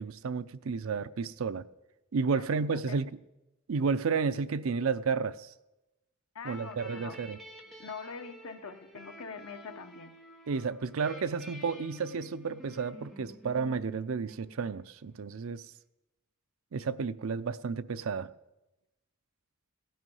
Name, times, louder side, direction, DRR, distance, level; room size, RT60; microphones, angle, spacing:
voice 1, 0.0-1.6 2.1-3.1 3.7-5.5 6.4-7.4 10.5-15.6 16.7-18.3, right 5 dB, 70° right, 0.5 m, -32 dB
voice 2, 2.3-3.0 6.3-7.2 7.8-10.1, left 5 dB, 80° left, 1.0 m, -44 dB
sound 1, 6.4-14.9, equal, ahead, 1.3 m, -50 dB
16.5 x 9.3 x 5.5 m
head